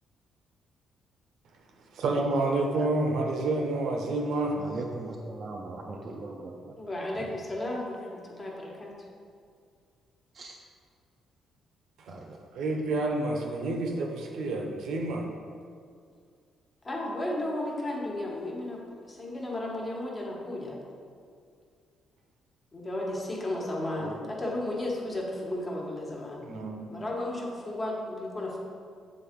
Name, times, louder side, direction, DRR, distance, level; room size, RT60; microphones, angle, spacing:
voice 1, 1.9-4.6 12.6-15.3 24.0-24.2 26.4-26.9, right 2 dB, 75° right, 1 dB, 0.8 m, -29 dB
voice 2, 4.5-6.8 7.2-7.3 10.3-10.6 12.1-12.5, right 3 dB, 45° right, 0 dB, 0.5 m, -40 dB
voice 3, 6.8-8.9 16.8-20.8 22.7-26.5 26.9-28.6, left 1 dB, 30° left, -3 dB, 1.3 m, -34 dB
7.4 x 3.7 x 3.6 m, 2.2 s
cardioid pair, 90°, 0 cm